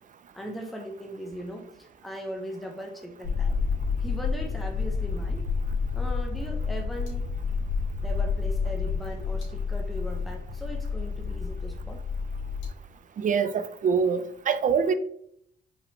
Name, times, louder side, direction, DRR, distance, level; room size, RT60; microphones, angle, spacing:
voice 1, 0.3-3.6 4.0-5.5 5.9-7.2 8.0-12.0, equal, ahead, 0.7 m, -39 dB
sound 1, 3.2-12.7, left 5 dB, 80° left, 1.4 m, -29 dB
voice 2, 13.2-14.9, right 6 dB, 40° right, 0.4 m, -24 dB
5.1 x 3.3 x 2.8 m
cardioid pair, 90°, 20 cm